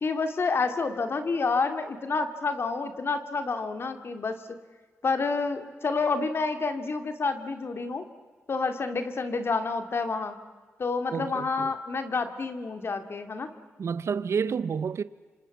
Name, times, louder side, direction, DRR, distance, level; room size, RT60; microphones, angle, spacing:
voice 1, 0.0-4.6 5.0-8.0 8.5-10.4 10.8-13.5, left 4 dB, 50° left, 2.5 m, -29 dB
voice 2, 11.1-11.7 13.8-15.0, right 6 dB, 60° right, 0.7 m, -29 dB
28.0 x 25.5 x 7.3 m
cardioid pair, 90°, 5 cm